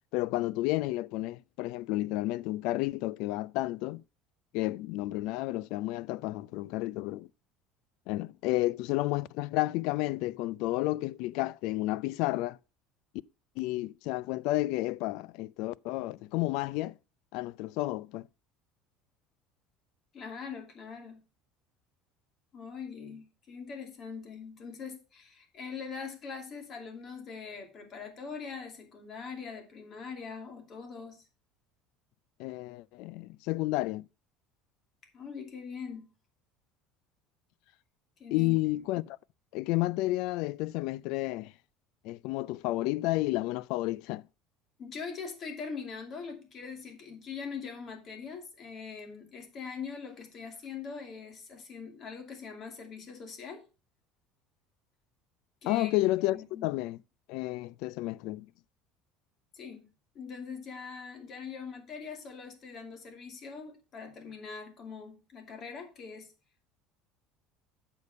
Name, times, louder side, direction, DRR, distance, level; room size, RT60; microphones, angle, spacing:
voice 1, 0.1-4.0 4.5-7.3 8.1-12.6 13.6-17.0 17.3-18.3 32.4-34.1 38.3-39.2 39.5-41.5 42.0-44.2 55.7-57.0 57.3-58.5, left 18 dB, 70° left, 0.3 m, -31 dB
voice 2, 20.1-21.2 22.5-31.2 35.1-36.1 38.2-38.8 44.8-53.7 55.6-56.0 56.3-56.7 59.5-59.9 60.1-66.3, left 5 dB, 40° left, 2.5 m, -42 dB
8.3 x 5.2 x 5.3 m
supercardioid pair, 120°, 0 cm